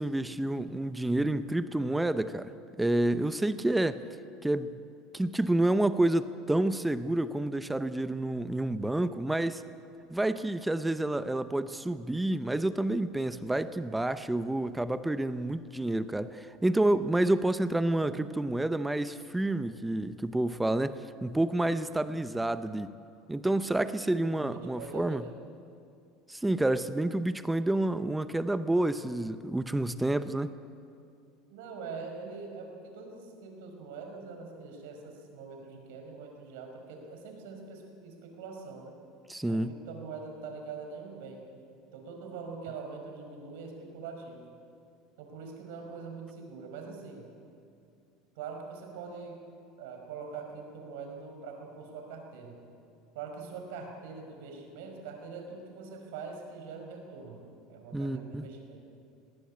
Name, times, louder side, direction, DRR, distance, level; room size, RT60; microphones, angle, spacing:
voice 1, 0.0-2.5 2.8-4.0 4.4-4.8 5.1-9.6 10.1-22.9 23.3-25.2 26.3-30.5 39.3-39.7 57.9-58.5, right 1 dB, 10° right, 12 dB, 0.8 m, -29 dB
voice 2, 24.2-25.3 31.5-39.0 39.5-41.5 41.9-44.5 45.2-47.3 48.4-49.4 49.8-52.6 53.1-58.8, right 4 dB, 80° right, 3 dB, 5.2 m, -43 dB
20.0 x 18.5 x 8.6 m, 2.5 s
supercardioid pair, 110°, 0 cm